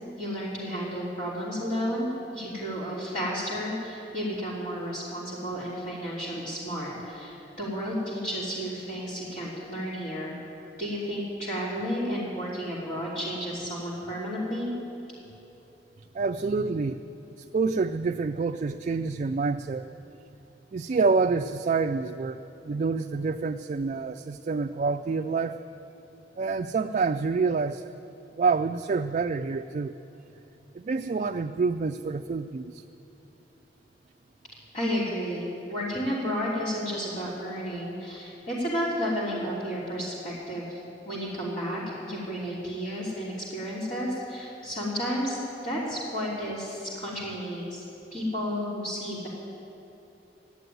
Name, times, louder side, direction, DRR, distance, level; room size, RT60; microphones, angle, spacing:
voice 1, 0.2-10.3 10.8-14.7 34.7-47.8 48.1-49.3, equal, 45° left, -8 dB, 3.2 m, -32 dB
voice 2, 16.1-17.0 17.4-19.8 20.7-22.4 22.6-25.6 26.4-27.9 28.4-29.9 30.7-32.8, right 4 dB, 40° right, 6 dB, 0.3 m, -27 dB
15.0 x 9.4 x 9.3 m, 3.0 s
head